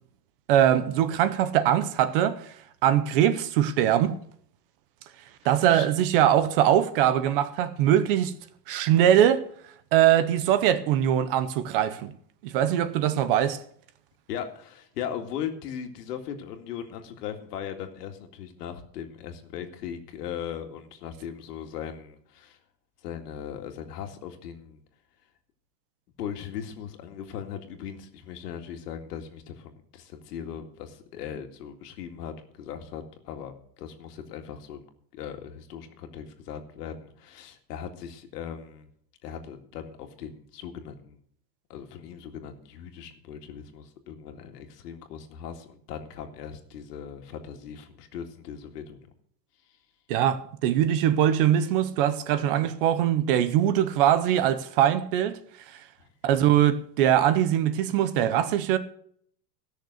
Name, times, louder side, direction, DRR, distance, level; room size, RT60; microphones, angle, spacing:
voice 1, 0.5-2.5 2.8-4.2 5.4-8.3 8.7-9.4 9.9-12.1 12.4-13.6 50.1-55.4 55.7-55.8 56.2-58.8, right 10 dB, 35° right, 0.7 m, -22 dB
voice 2, 14.3-22.6 23.0-24.8 26.2-34.8 35.1-38.9 39.2-41.2 41.7-49.1 56.0-56.1, left 8 dB, 75° left, 2.2 m, -39 dB
16.0 x 6.6 x 6.4 m
supercardioid pair, 170°, 48 cm